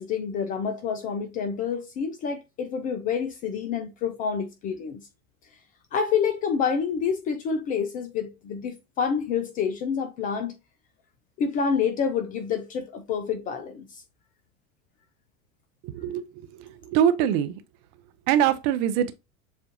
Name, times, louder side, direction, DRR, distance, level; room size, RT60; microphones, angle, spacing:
voice 1, 0.0-5.1 5.9-10.6 11.4-14.0, left 6 dB, 20° left, 0.3 m, -28 dB
voice 2, 15.8-17.6 18.3-19.1, right 10 dB, 40° right, 0.6 m, -24 dB
7.2 x 2.4 x 2.7 m
figure-of-eight pair, 90°, 40 cm